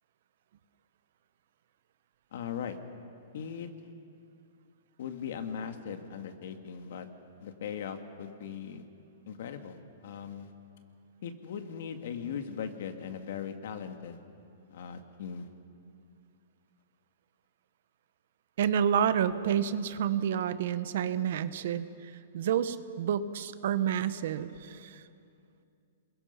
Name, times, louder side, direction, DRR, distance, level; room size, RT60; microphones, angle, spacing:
voice 1, 2.3-2.8 3.3-3.7 5.0-7.1 7.4-8.8 9.3-10.5 11.2-14.2 14.7-15.5, left 7 dB, 65° left, 7 dB, 1.9 m, -39 dB
voice 2, 18.6-25.0, right 9 dB, 60° right, 13 dB, 1.0 m, -29 dB
27.0 x 21.5 x 5.7 m, 2.5 s
hypercardioid pair, 160°, 0 cm